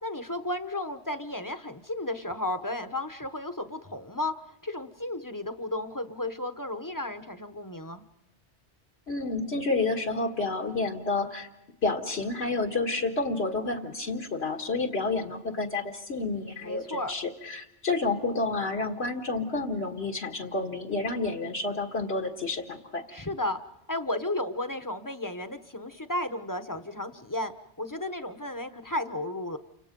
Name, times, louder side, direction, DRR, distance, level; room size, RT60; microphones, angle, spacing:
voice 1, 0.0-4.3 4.6-8.0 16.6-17.1 23.1-23.6 23.9-27.5 27.8-29.6, left 1 dB, 20° left, 9 dB, 1.0 m, -33 dB
voice 2, 9.1-11.5 11.8-23.0, left 3 dB, 70° left, 1 dB, 2.0 m, -30 dB
29.5 x 26.0 x 5.4 m, 0.95 s
omnidirectional pair, 1.2 m